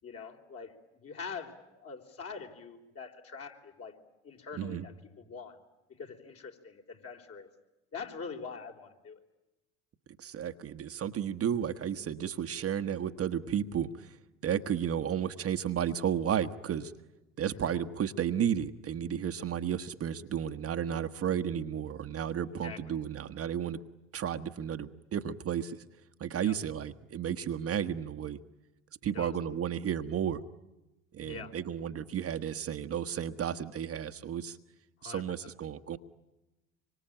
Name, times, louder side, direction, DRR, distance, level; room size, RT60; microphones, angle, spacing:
voice 1, 0.0-3.9 4.2-4.9 5.2-5.6 6.0-7.5 7.9-9.2 17.5-17.8 22.6-23.0 26.4-26.6 29.1-29.3 31.2-31.5 35.0-35.5, left 5 dB, 40° left, 3 dB, 4.1 m, -44 dB
voice 2, 10.2-14.2 14.4-16.9 17.4-23.8 24.1-25.8 26.2-28.4 29.0-30.4 31.1-34.6 35.0-36.0, right 9 dB, 40° right, 8 dB, 1.3 m, -33 dB
25.5 x 24.5 x 8.9 m, 1.0 s
hypercardioid pair, 75°, 35 cm